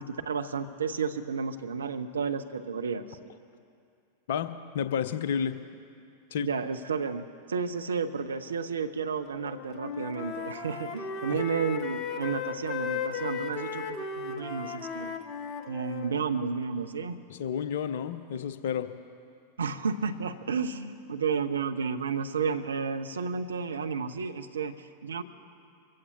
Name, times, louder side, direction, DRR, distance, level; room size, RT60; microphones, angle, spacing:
voice 1, 0.0-3.1 6.4-15.1 15.7-17.2 19.6-25.2, right 5 dB, 70° right, 8 dB, 0.7 m, -32 dB
voice 2, 4.3-5.6 6.3-6.5 11.3-11.4 17.3-18.9, left 8 dB, 55° left, 11 dB, 0.7 m, -31 dB
Wind instrument woodwind instrument, 9.4-16.1, left 6 dB, 30° left, 1.1 m, -36 dB
23.5 x 15.5 x 2.7 m, 2.5 s
figure-of-eight pair, 90°, 0 cm